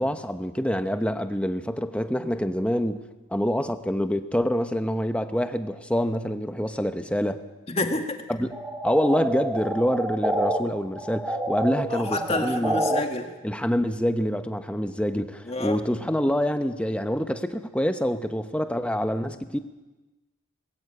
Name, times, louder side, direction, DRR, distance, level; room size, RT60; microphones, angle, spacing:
voice 1, 0.0-3.0 3.3-7.4 8.3-8.5 8.8-12.8 13.4-19.6, equal, 5° left, 8 dB, 0.9 m, -26 dB
voice 2, 7.7-8.2 11.9-13.3 15.5-15.8, left 2 dB, 30° left, 4 dB, 1.9 m, -29 dB
sound 1, 8.5-10.6 10.9-13.0, right 1 dB, 10° right, 1.5 m, -28 dB
21.0 x 14.5 x 8.7 m, 1.1 s
head